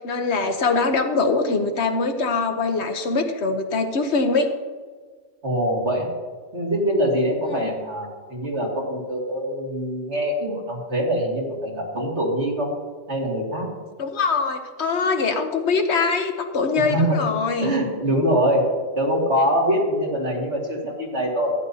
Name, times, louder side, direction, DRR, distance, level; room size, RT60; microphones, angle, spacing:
voice 1, 0.0-4.5 7.5-7.7 14.0-17.8, left 4 dB, 65° left, 6 dB, 1.2 m, -23 dB
voice 2, 5.4-6.1 6.5-12.7 13.1-13.7 16.7-17.3 17.6-21.5, equal, 65° right, -3 dB, 2.8 m, -23 dB
15.0 x 9.9 x 2.8 m, 1.5 s
omnidirectional pair, 1.2 m